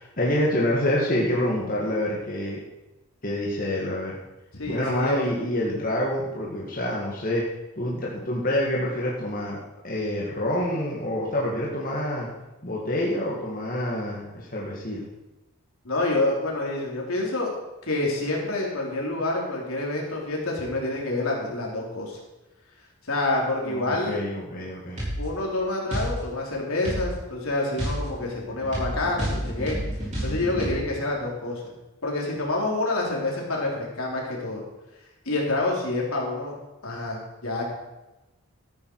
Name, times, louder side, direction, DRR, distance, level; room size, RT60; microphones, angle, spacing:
voice 1, 0.0-2.6 3.2-4.2 4.7-7.4 7.8-9.6 9.8-12.3 12.6-15.0 23.6-25.0, left 1 dB, 40° left, -4 dB, 1.8 m, -27 dB
voice 2, 4.5-5.2 15.8-17.5 17.8-22.2 23.1-24.2 25.2-29.8 30.2-31.6 32.0-34.6 35.3-36.5 36.8-37.6, left 2 dB, 75° left, -2 dB, 3.7 m, -27 dB
sound 1, 25.0-25.2 25.9-26.1 26.8-27.1 27.8-30.7, equal, 30° right, 5.2 m, -29 dB
13.5 x 10.5 x 4.8 m, 1.0 s
head